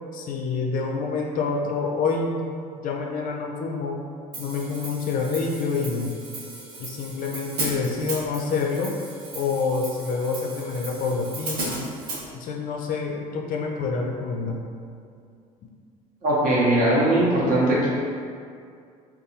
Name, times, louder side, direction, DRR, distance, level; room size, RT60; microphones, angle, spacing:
voice 1, 0.1-2.5 2.8-4.0 4.4-6.1 6.8-9.0 9.3-11.9 12.3-14.6, left 4 dB, 45° left, 0 dB, 0.4 m, -27 dB
Hi-hat, 4.3-12.2, right 2 dB, 85° right, 0.6 m, -36 dB
voice 2, 16.2-17.9, right 1 dB, 45° right, -6 dB, 1.0 m, -20 dB
2.6 x 2.3 x 2.7 m, 2.3 s
hypercardioid pair, 65°, 19 cm